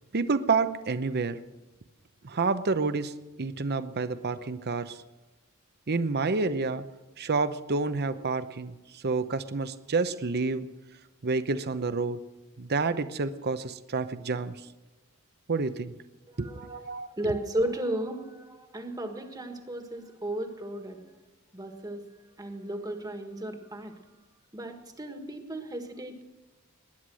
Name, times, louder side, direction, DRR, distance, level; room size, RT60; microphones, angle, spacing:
voice 1, 0.1-1.4 2.2-3.1 3.4-5.0 5.9-6.8 7.2-10.7 11.2-12.2 12.6-14.5 15.5-15.9 16.4-17.3, right 4 dB, 50° right, 12 dB, 0.8 m, -29 dB
voice 2, 16.3-21.0 21.5-22.0 22.4-23.9 24.5-26.2, right 1 dB, 20° right, 5 dB, 1.6 m, -35 dB
20.5 x 10.0 x 6.3 m, 1.1 s
head